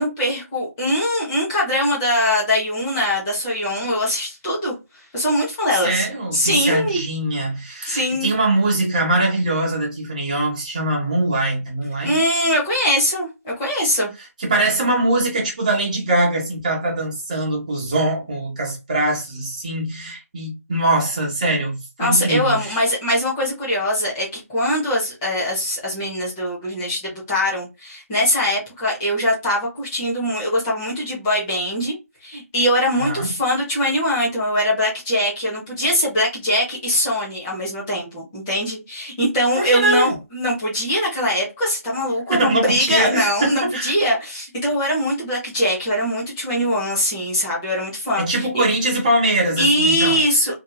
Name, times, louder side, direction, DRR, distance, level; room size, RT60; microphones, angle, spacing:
voice 1, 0.0-4.7 5.1-6.1 6.3-7.0 7.8-8.3 12.0-14.1 22.0-31.9 32.2-48.6 49.6-50.5, equal, 10° left, 0.9 m, -22 dB
voice 2, 5.8-12.2 14.4-22.8 33.0-33.3 39.5-40.2 42.3-43.9 48.2-50.2, right 1 dB, 30° right, 1.2 m, -22 dB
2.9 x 2.6 x 2.3 m
figure-of-eight pair, 170°, 8 cm